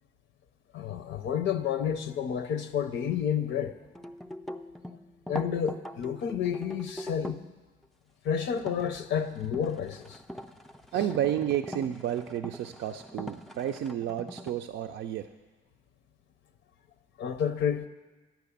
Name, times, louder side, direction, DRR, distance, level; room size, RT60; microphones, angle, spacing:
voice 1, 0.7-3.8 5.3-7.4 8.2-10.2 17.2-17.9, left 8 dB, 75° left, 0.6 m, -30 dB
sound 1, 3.9-7.5 8.5-8.8 9.4-14.5, equal, ahead, 0.4 m, -41 dB
voice 2, 10.9-15.3, right 11 dB, 75° right, 0.5 m, -31 dB
9.2 x 5.9 x 8.4 m
cardioid pair, 90°, 20 cm